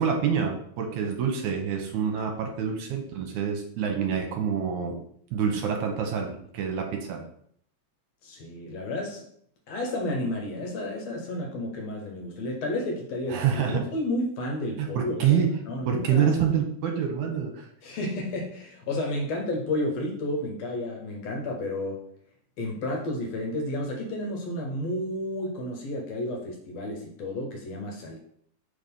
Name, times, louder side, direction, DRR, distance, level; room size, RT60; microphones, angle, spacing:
voice 1, 0.0-5.0 5.3-7.2 13.3-13.8 14.8-15.6 15.9-17.7, right 7 dB, 75° right, 2 dB, 2.2 m, -26 dB
voice 2, 8.2-9.2 9.7-16.3 17.8-22.0 22.6-28.2, left 1 dB, 65° left, 0 dB, 2.0 m, -31 dB
4.7 x 4.0 x 5.2 m, 0.64 s
omnidirectional pair, 3.6 m